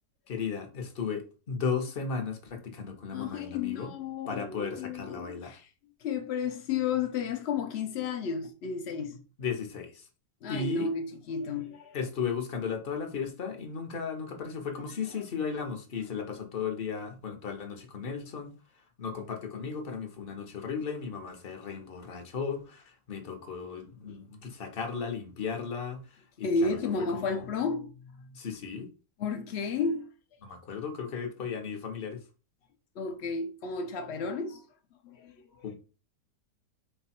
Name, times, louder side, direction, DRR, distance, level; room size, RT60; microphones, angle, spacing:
voice 1, 0.3-3.9 4.3-5.6 9.4-10.1 10.5-10.9 11.9-18.5 19.0-26.0 26.4-27.4 28.3-28.9 30.4-32.2 35.6-35.8, left 6 dB, 45° left, 0.8 m, -35 dB
voice 2, 3.1-5.7 6.0-9.2 10.4-12.0 26.4-28.4 29.2-30.1 33.0-34.6 35.0-35.7, left 5 dB, 85° left, 0.5 m, -32 dB
4.5 x 2.3 x 4.2 m
omnidirectional pair, 1.8 m